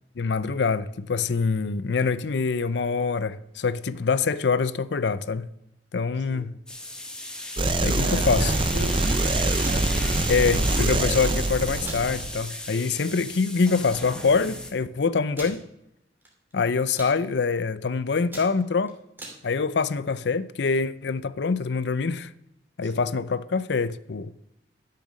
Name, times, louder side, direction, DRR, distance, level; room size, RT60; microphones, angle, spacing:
voice 1, 0.2-5.5 5.9-6.5 7.8-8.5 10.3-15.6 16.5-18.9 19.4-22.3 22.8-24.3, left 4 dB, 70° left, 0.5 m, -25 dB
voice 2, 6.2-6.5 7.6-10.1 22.8-23.1, right 1 dB, 85° right, 2.5 m, -37 dB
sound 1, 6.7-14.7, left 1 dB, 5° left, 1.4 m, -35 dB
sound 2, 7.6-12.4, right 2 dB, 30° right, 0.6 m, -24 dB
sound 3, 9.6-9.9 11.1-11.4 11.8-12.0 12.5-12.6 13.0-13.2 14.0-14.1 14.3-14.4 15.3-15.6 16.2-16.5 16.8-17.1 17.7-17.9 18.2-19.4, right 1 dB, 10° right, 2.7 m, -40 dB
12.0 x 6.7 x 6.3 m
head